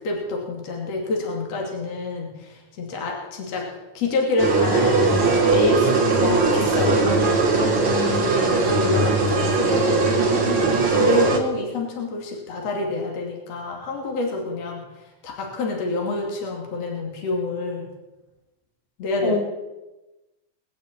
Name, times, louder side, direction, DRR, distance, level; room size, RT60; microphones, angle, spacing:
voice 1, 0.0-7.4 8.2-17.9 19.0-19.4, left 2 dB, 50° left, -1 dB, 3.6 m, -27 dB
sound 1, 4.4-11.4, right 3 dB, 40° right, 3.0 m, -20 dB
voice 2, 7.8-8.7 19.2-19.4, left 3 dB, 80° left, -2 dB, 5.8 m, -29 dB
21.0 x 7.2 x 8.6 m, 1.0 s
omnidirectional pair, 3.9 m